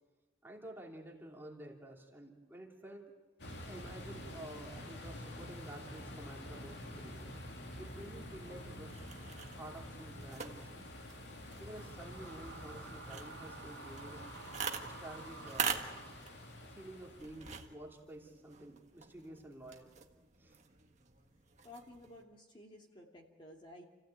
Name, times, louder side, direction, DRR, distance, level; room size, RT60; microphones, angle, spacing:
voice 1, 0.4-3.1 3.6-7.3 7.8-9.0 9.6-10.8 11.6-14.3 14.8-15.9 16.7-19.9 20.4-20.6, right 1 dB, 10° right, -2 dB, 3.0 m, -51 dB
sound 1, 3.4-17.6, left 1 dB, 60° left, 2.9 m, -48 dB
sound 2, 8.8-22.2, right 6 dB, 35° right, 1.7 m, -45 dB
sound 3, 11.6-16.7, right 5 dB, 75° right, 1.2 m, -53 dB
voice 2, 21.6-23.8, left 1 dB, 25° left, -1 dB, 2.7 m, -54 dB
29.5 x 16.0 x 9.1 m, 1.3 s
head